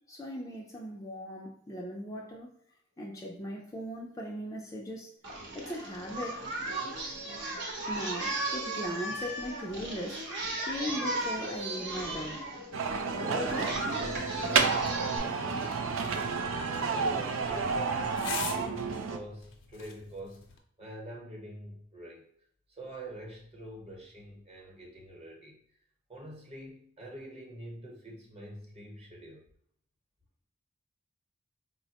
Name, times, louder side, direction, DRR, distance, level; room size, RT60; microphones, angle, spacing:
voice 1, 0.1-2.5 3.0-5.1 5.5-6.4 7.9-10.2 10.7-12.4 13.1-13.7, equal, 15° left, -1 dB, 0.4 m, -38 dB
Singing, 5.2-15.2, right 2 dB, 65° right, 0.9 m, -36 dB
sound 1, 12.7-19.2, right 5 dB, 80° right, 0.4 m, -30 dB
voice 2, 14.4-14.9 15.2-16.4 16.9-18.1 18.4-20.4 20.8-22.3 22.8-25.6 26.1-29.5, right 1 dB, 30° right, -1 dB, 1.0 m, -45 dB
sound 2, 15.6-20.6, left 5 dB, 70° left, 0.6 m, -44 dB
4.4 x 2.1 x 2.8 m, 0.65 s
head